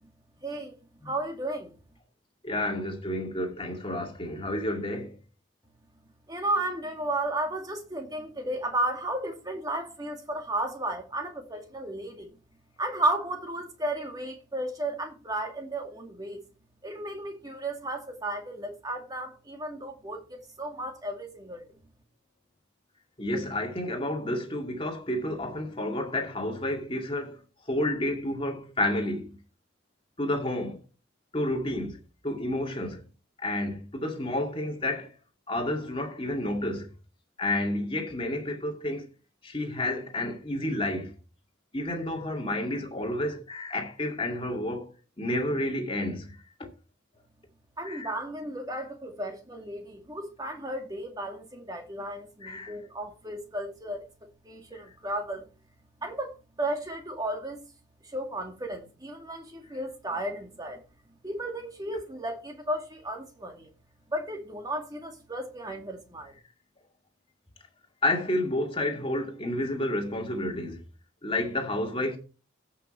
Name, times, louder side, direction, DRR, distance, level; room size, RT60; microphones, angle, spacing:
voice 1, 0.4-1.7 6.0-12.4 12.8-16.4 16.8-21.7 47.8-54.1 54.4-55.5 56.0-57.6 58.0-60.8 61.2-63.7 64.1-66.3, right 1 dB, 20° right, 2.3 m, -34 dB
voice 2, 2.4-5.2 23.2-27.4 27.7-29.3 30.2-30.8 31.3-32.0 32.2-33.0 33.4-35.1 35.5-36.9 37.4-39.0 39.4-41.1 41.7-44.9 45.2-46.7 47.8-48.1 52.4-52.7 68.0-70.8 71.2-72.2, left 1 dB, 25° left, 2.2 m, -30 dB
15.5 x 6.1 x 4.4 m
head